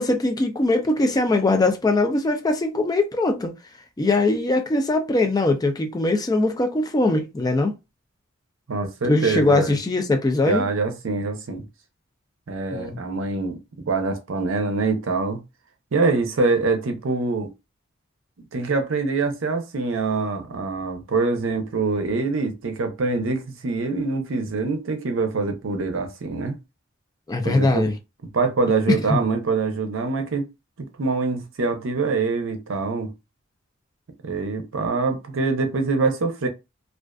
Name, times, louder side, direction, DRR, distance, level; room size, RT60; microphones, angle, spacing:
voice 1, 0.0-3.6 4.0-7.7 9.1-10.7 12.7-13.0 27.3-28.0 29.1-29.2, left 2 dB, 20° left, 0.3 m, -21 dB
voice 2, 8.7-9.7 10.5-11.6 12.5-13.6 13.9-15.4 15.9-17.5 18.5-26.6 27.4-27.9 28.3-30.5 30.8-33.1 34.2-36.5, right 3 dB, 65° right, 0.6 m, -24 dB
2.4 x 2.3 x 2.3 m
head